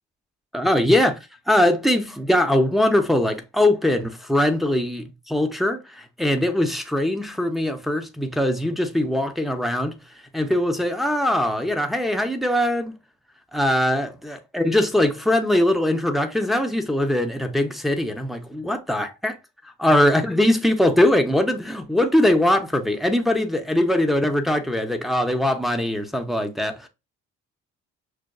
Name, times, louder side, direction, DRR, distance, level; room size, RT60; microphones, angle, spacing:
voice 1, 0.5-1.2 1.5-10.0 10.3-12.9 13.5-19.4 19.8-26.9, left 1 dB, ahead, 0.5 m, -21 dB
6.1 x 2.2 x 2.2 m
cardioid pair, 90°, 30 cm